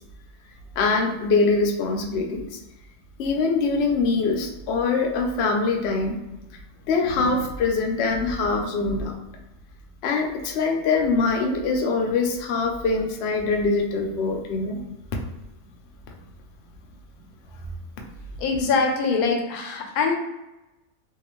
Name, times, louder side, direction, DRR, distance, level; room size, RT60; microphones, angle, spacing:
voice 1, 0.8-2.6 3.2-6.2 6.9-9.1 10.0-14.8 18.0-18.1, left 4 dB, 65° left, 2 dB, 0.6 m, -23 dB
voice 2, 18.4-20.2, left 4 dB, 85° left, 3 dB, 1.1 m, -23 dB
2.7 x 2.3 x 3.0 m, 0.97 s
omnidirectional pair, 1.5 m